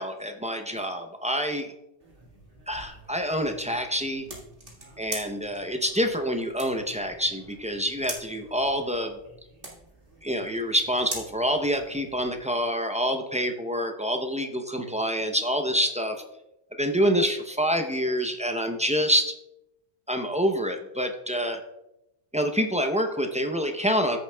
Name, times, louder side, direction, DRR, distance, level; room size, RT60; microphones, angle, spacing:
voice 1, 0.0-1.7 2.7-4.3 5.0-9.2 10.2-16.2 16.8-19.3 20.1-21.6 22.3-24.2, equal, 10° right, 4 dB, 0.5 m, -27 dB
sound 1, 2.0-12.4, right 2 dB, 50° right, 2.0 m, -43 dB
14.5 x 7.0 x 2.3 m, 0.87 s
omnidirectional pair, 1.2 m